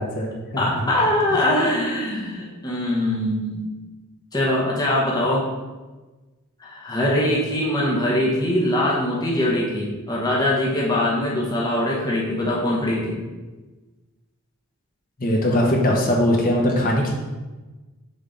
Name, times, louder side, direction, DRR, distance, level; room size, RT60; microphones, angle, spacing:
voice 1, 0.0-0.6 1.3-1.4 15.2-17.1, left 1 dB, 40° left, -1 dB, 1.1 m, -21 dB
voice 2, 0.6-3.7 4.3-5.4 6.6-13.2, left 1 dB, 20° left, -4 dB, 1.0 m, -22 dB
6.3 x 3.6 x 5.0 m, 1.2 s
head